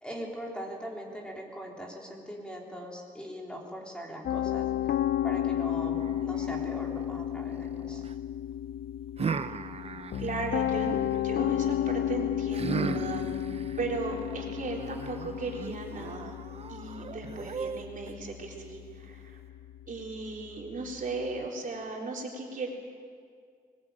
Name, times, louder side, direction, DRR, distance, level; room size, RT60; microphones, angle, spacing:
voice 1, 0.0-4.7 5.2-8.0, equal, 5° left, -1 dB, 3.4 m, -41 dB
Piano, 4.2-21.4, left 11 dB, 85° left, 0.6 m, -33 dB
sound 1, 5.9-8.1 9.2-11.2 12.5-18.1, right 6 dB, 40° right, 0.7 m, -38 dB
voice 2, 10.2-13.2 13.8-16.4 16.7-19.4 19.9-22.7, right 3 dB, 55° right, -1 dB, 3.7 m, -36 dB
21.5 x 21.0 x 9.0 m, 2.1 s
wide cardioid pair, 160°, 16 cm